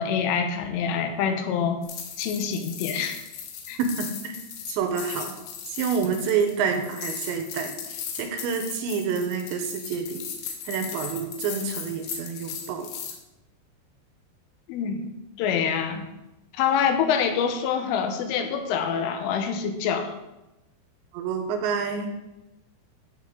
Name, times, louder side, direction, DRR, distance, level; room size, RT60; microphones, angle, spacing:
voice 1, 0.0-1.8 2.2-3.2 3.7-3.8 14.7-16.1 16.5-20.1, left 7 dB, 90° left, 7 dB, 3.5 m, -26 dB
sound 1, 1.8-13.2, left 7 dB, 70° left, 3.1 m, -37 dB
voice 2, 4.0-4.4 4.7-5.4 5.6-7.7 8.1-10.2 10.7-12.9 21.1-22.1, right 6 dB, 80° right, 5 dB, 2.9 m, -28 dB
13.5 x 7.4 x 3.8 m, 0.98 s
omnidirectional pair, 5.6 m